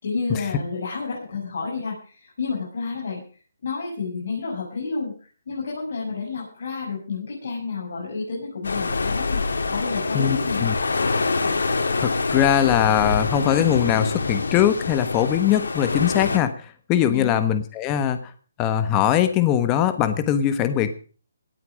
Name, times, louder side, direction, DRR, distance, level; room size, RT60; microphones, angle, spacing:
voice 1, 0.0-3.2 3.6-10.7 17.0-17.4, left 4 dB, 60° left, -4 dB, 7.3 m, -30 dB
sound 1, 8.6-16.4, left 3 dB, 80° left, 3.0 m, -25 dB
voice 2, 10.1-10.7 12.0-18.3 18.6-20.9, left 10 dB, 20° left, 9 dB, 1.3 m, -21 dB
18.5 x 8.4 x 6.4 m, 0.40 s
hypercardioid pair, 160°, 0 cm